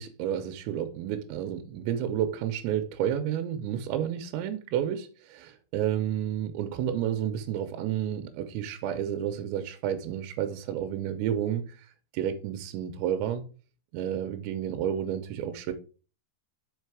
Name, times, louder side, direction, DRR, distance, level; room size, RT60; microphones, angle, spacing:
voice 1, 0.0-11.6 12.1-13.4 13.9-15.7, right 10 dB, 85° right, 2.9 m, -31 dB
5.6 x 5.2 x 4.7 m
omnidirectional pair, 5.2 m